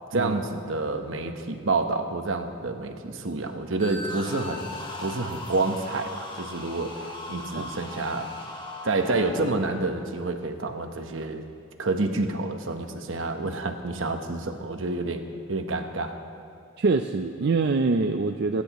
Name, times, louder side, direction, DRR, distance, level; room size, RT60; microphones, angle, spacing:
voice 1, 0.1-8.3 8.8-11.4 11.8-15.2 15.5-16.1, right 3 dB, 75° right, 6 dB, 1.0 m, -28 dB
sound 1, 3.8-9.4, left 1 dB, 25° left, 1.4 m, -38 dB
voice 2, 16.8-18.6, right 3 dB, 60° right, 6 dB, 0.5 m, -24 dB
30.0 x 10.5 x 3.0 m, 2.5 s
head